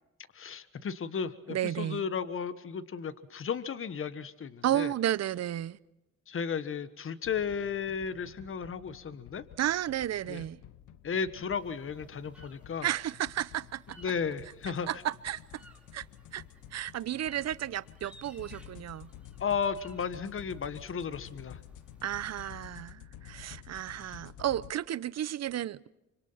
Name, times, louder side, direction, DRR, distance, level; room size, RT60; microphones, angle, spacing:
voice 1, 0.3-4.9 6.3-9.4 10.3-10.4 11.0-12.9 14.0-14.9 19.4-21.6 24.0-24.2, left 6 dB, 45° left, 1.5 m, -34 dB
voice 2, 1.5-2.0 4.6-5.8 9.6-10.6 12.8-14.0 14.9-15.6 15.9-16.0 16.3-16.4 16.7-19.1 22.0-25.9, right 11 dB, 60° right, 0.8 m, -33 dB
sound 1, 7.2-24.7, left 11 dB, 75° left, 1.0 m, -51 dB
sound 2, 11.5-22.5, right 2 dB, 5° right, 4.4 m, -59 dB
26.0 x 25.5 x 5.8 m
cardioid pair, 90°, 30 cm